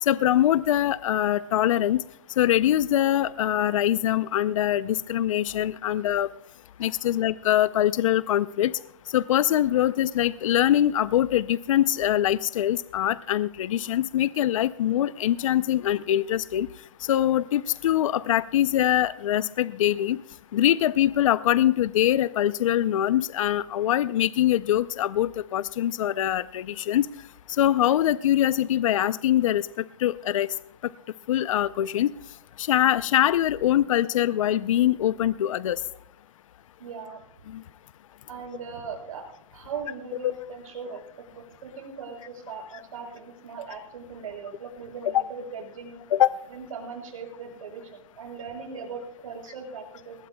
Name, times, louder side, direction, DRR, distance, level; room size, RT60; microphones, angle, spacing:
voice 1, 0.0-2.0 2.4-6.3 6.8-8.7 9.1-16.7 17.0-20.2 20.5-27.1 27.6-30.5 31.3-32.1 32.6-35.8 37.5-37.6 46.1-46.4, left 12 dB, 75° left, 16 dB, 0.5 m, -23 dB
voice 2, 36.8-37.2 38.3-41.0 41.3-46.0 46.5-50.2, right 5 dB, 85° right, 2 dB, 6.5 m, -39 dB
20.5 x 17.5 x 2.2 m, 0.76 s
supercardioid pair, 170°, 17 cm